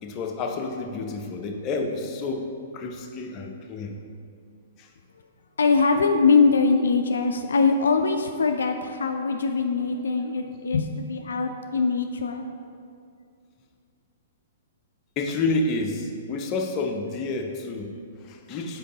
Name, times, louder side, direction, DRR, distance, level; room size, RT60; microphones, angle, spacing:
voice 1, 0.0-4.0 4.8-4.9 15.2-18.8, left 3 dB, 30° left, 3 dB, 0.6 m, -29 dB
voice 2, 5.6-12.5, left 4 dB, 75° left, 5 dB, 0.3 m, -22 dB
5.2 x 4.7 x 3.8 m, 2.3 s
hypercardioid pair, 120°, 0 cm